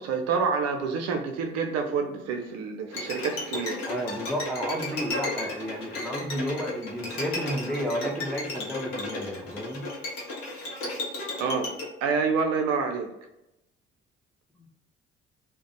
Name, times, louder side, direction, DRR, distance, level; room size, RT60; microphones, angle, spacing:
voice 1, 0.0-3.8 5.7-5.9 11.4-11.7 12.0-13.1, right 5 dB, 55° right, 5 dB, 0.4 m, -28 dB
Bowed string instrument, 2.9-11.9, left 2 dB, 70° left, 0.8 m, -34 dB
voice 2, 3.9-9.8 14.6-14.7, equal, ahead, -1 dB, 0.5 m, -32 dB
2.4 x 2.0 x 2.7 m, 0.89 s
figure-of-eight pair, 45°, 31 cm